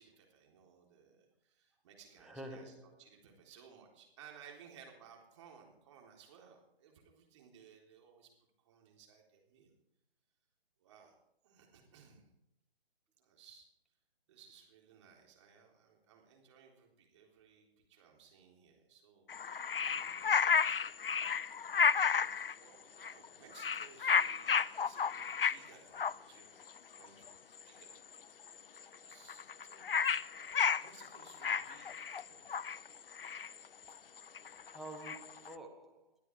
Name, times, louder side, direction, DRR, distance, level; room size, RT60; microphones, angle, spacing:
voice 1, 0.0-2.7 3.0-8.3 8.6-9.7 10.8-11.1 11.4-12.3 13.2-13.7 14.3-19.4 19.8-20.9 21.7-22.3 22.6-28.0 28.3-28.6 29.0-30.5 30.8-32.5, right 7 dB, 30° right, 3.9 m, -60 dB
voice 2, 2.2-3.0 33.8-33.9 34.7-36.2, right 1 dB, ahead, 0.8 m, -49 dB
sound 1, 19.3-22.5 23.0-23.3 23.5-25.7 25.9-26.1 26.8-26.9 27.0-27.3 27.6-27.9 28.2-28.3 28.4-28.5 28.8-35.5, left 6 dB, 65° left, 0.6 m, -32 dB
21.5 x 12.0 x 4.8 m
figure-of-eight pair, 145°, 31 cm